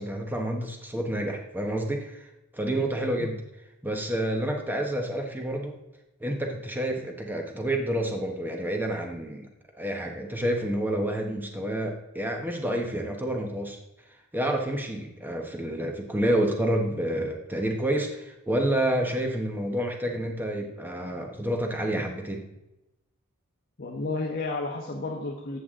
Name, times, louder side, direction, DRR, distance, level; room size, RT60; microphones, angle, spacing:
voice 1, 0.0-2.3 2.5-3.4 3.8-5.7 6.2-9.5 9.8-13.8 14.3-22.4, right 1 dB, 10° right, 2 dB, 1.2 m, -29 dB
voice 2, 23.8-25.6, left 3 dB, 45° left, 1 dB, 1.2 m, -32 dB
14.0 x 8.1 x 3.8 m, 0.92 s
head